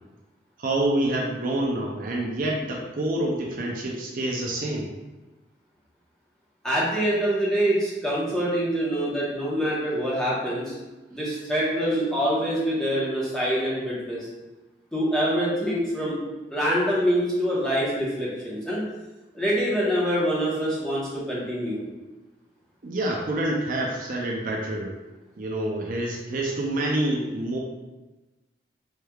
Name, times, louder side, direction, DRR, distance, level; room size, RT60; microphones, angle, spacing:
voice 1, 0.6-4.9 22.8-25.0 25.4-27.6, right 1 dB, 50° right, -1 dB, 0.5 m, -27 dB
voice 2, 6.6-10.8 11.1-14.3 14.9-16.2 16.5-18.8 19.3-21.8, equal, 5° left, -7 dB, 1.0 m, -25 dB
4.4 x 3.3 x 2.3 m, 1.1 s
head